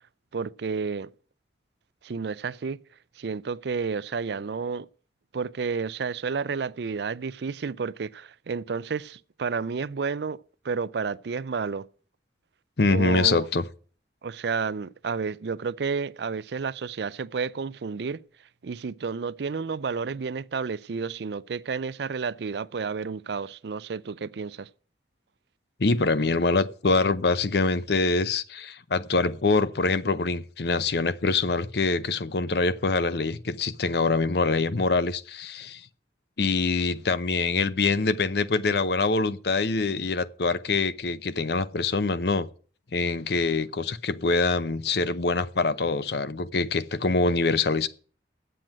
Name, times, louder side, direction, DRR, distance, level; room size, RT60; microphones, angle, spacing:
voice 1, 0.3-1.1 2.0-2.8 3.2-4.9 5.3-11.9 12.9-13.5 14.2-18.2 18.6-24.7, right 5 dB, 65° right, 0.4 m, -31 dB
voice 2, 12.8-13.6 25.8-35.9 36.4-42.5 42.9-47.9, left 3 dB, 60° left, 0.7 m, -24 dB
8.9 x 7.7 x 7.8 m
head